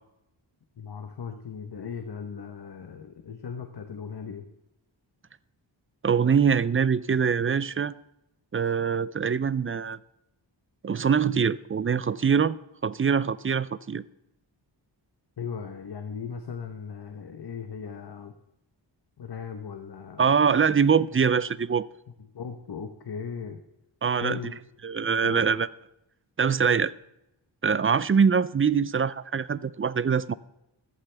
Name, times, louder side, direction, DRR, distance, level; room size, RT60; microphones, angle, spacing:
voice 1, 0.8-4.5 15.4-18.4 19.2-20.5 22.3-23.6 24.2-24.6 25.0-25.5, left 6 dB, 55° left, 1.1 m, -37 dB
voice 2, 6.0-8.0 8.5-10.0 10.8-12.6 12.8-14.0 20.2-21.9 24.0-24.4 24.8-25.7 26.4-26.9 27.6-30.3, right 6 dB, 30° right, 0.4 m, -23 dB
15.0 x 14.0 x 3.4 m
wide cardioid pair, 85°, 46 cm